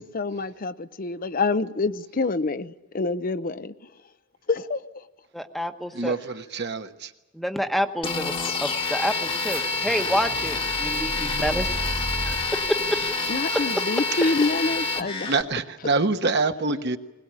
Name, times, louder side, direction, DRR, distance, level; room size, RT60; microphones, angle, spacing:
voice 1, 0.0-3.7 4.5-4.8 13.3-15.3, left 3 dB, 45° left, 0.7 m, -26 dB
voice 2, 5.3-6.1 7.3-8.3 8.6-11.8 12.2-13.0 13.5-14.0, equal, ahead, 1.1 m, -28 dB
voice 3, 5.9-7.1 13.5-13.6 14.2-14.3 15.3-17.0, right 3 dB, 60° right, 1.3 m, -26 dB
sound 1, 8.0-15.4, left 4 dB, 25° left, 1.4 m, -28 dB
sound 2, 8.9-13.8, right 1 dB, 80° right, 2.7 m, -35 dB
20.5 x 20.5 x 8.9 m
head